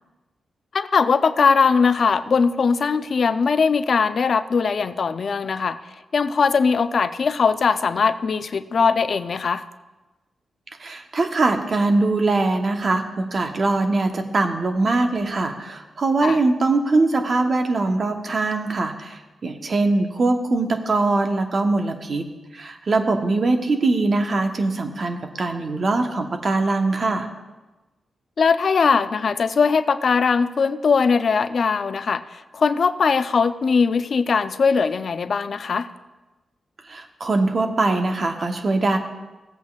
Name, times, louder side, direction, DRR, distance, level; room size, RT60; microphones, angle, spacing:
voice 1, 0.7-5.8 6.1-9.6 16.2-16.4 28.4-35.9, left 5 dB, 65° left, 13 dB, 0.4 m, -20 dB
voice 2, 10.8-22.3 22.5-27.3 36.9-39.0, right 3 dB, 55° right, 5 dB, 1.0 m, -22 dB
16.0 x 8.2 x 2.4 m, 1.1 s
supercardioid pair, 40°, 0 cm